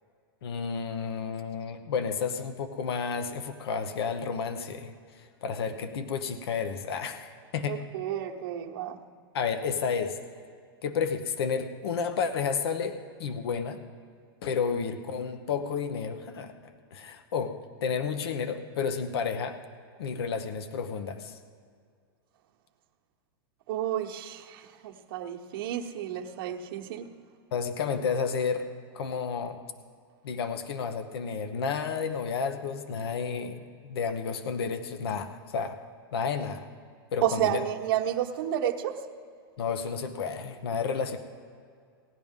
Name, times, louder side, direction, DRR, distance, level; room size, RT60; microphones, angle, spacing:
voice 1, 0.4-7.8 9.3-10.2 10.8-13.8 14.4-16.5 16.9-17.5 17.8-19.6 20.0-21.4 27.5-28.7 28.9-29.6 30.2-35.8 36.1-36.6 37.1-37.6 39.6-41.2, left 6 dB, 80° left, 9 dB, 0.9 m, -31 dB
voice 2, 7.6-9.0 23.7-27.1 37.2-39.0, right 11 dB, 65° right, 3 dB, 1.0 m, -31 dB
17.5 x 10.5 x 3.7 m, 2.2 s
hypercardioid pair, 130°, 13 cm